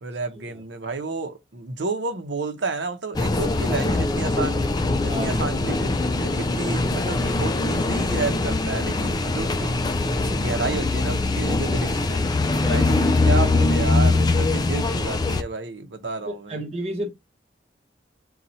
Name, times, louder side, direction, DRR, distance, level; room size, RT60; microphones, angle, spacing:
voice 1, 0.0-4.6 5.0-9.8 10.2-12.2 12.7-16.6, right 3 dB, 80° right, 0.8 m, -31 dB
sound 1, 3.1-15.4, left 2 dB, 20° left, 0.3 m, -22 dB
voice 2, 5.1-5.4 12.6-13.0 16.2-17.1, equal, 35° right, 1.2 m, -32 dB
4.1 x 2.4 x 4.1 m
head